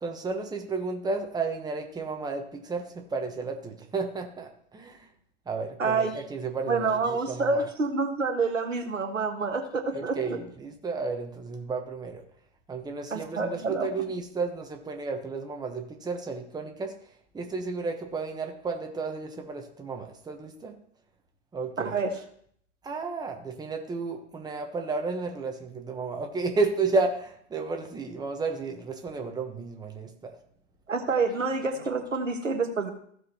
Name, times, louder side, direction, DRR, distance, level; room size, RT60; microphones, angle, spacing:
voice 1, 0.0-5.1 5.5-7.6 9.9-12.2 12.7-16.9 17.3-20.7 21.5-22.0 22.8-30.3, right 4 dB, 10° right, 3 dB, 1.3 m, -32 dB
voice 2, 5.8-6.1 6.7-10.4 13.1-13.9 21.8-22.1 30.9-32.9, right 4 dB, 85° right, 5 dB, 1.5 m, -28 dB
15.5 x 6.3 x 3.1 m, 0.64 s
figure-of-eight pair, 100°, 37 cm